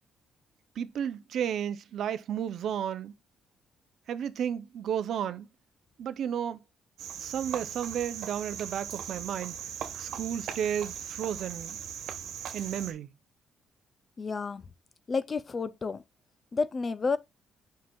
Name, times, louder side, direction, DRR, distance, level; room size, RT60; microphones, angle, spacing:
voice 1, 0.8-3.1 4.1-5.5 6.0-6.6 7.2-9.5 10.0-11.8 12.5-13.1, right 9 dB, 60° right, 0.5 m, -33 dB
Cricket, 7.0-12.9, right 8 dB, 75° right, 1.2 m, -39 dB
voice 2, 14.2-14.6 15.1-16.0 16.5-17.2, left 4 dB, 25° left, 0.4 m, -30 dB
7.6 x 5.7 x 2.3 m
cardioid pair, 150°, 0 cm